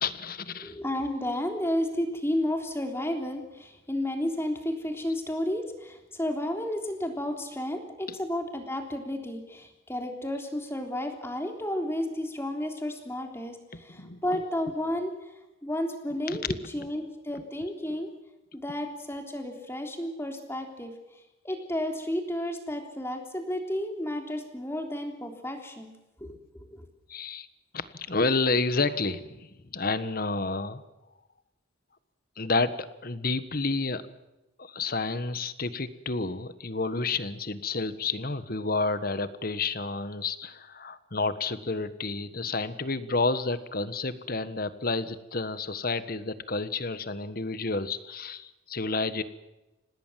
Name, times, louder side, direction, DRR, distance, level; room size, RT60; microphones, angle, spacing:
voice 1, 0.0-0.8 14.0-14.2 16.3-16.4 27.1-27.5 27.7-30.8 32.4-34.0 34.6-49.2, left 3 dB, 50° left, 13 dB, 1.4 m, -30 dB
voice 2, 0.6-15.3 15.6-18.1 18.5-25.9 26.2-26.9, left 1 dB, 15° left, 4 dB, 3.5 m, -32 dB
26.5 x 19.0 x 7.6 m, 1.0 s
head